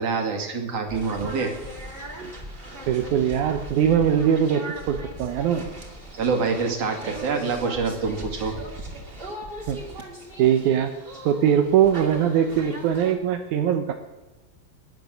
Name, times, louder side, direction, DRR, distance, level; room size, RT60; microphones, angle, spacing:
voice 1, 0.0-1.5 6.1-8.5, right 4 dB, 45° right, 3 dB, 3.0 m, -26 dB
sound 1, 0.9-13.1, right 1 dB, 20° right, 2.0 m, -38 dB
voice 2, 2.9-5.7 9.7-9.8 10.4-10.9 11.3-13.9, right 9 dB, 70° right, 5 dB, 1.9 m, -21 dB
21.5 x 9.5 x 6.4 m, 1.1 s
omnidirectional pair, 4.2 m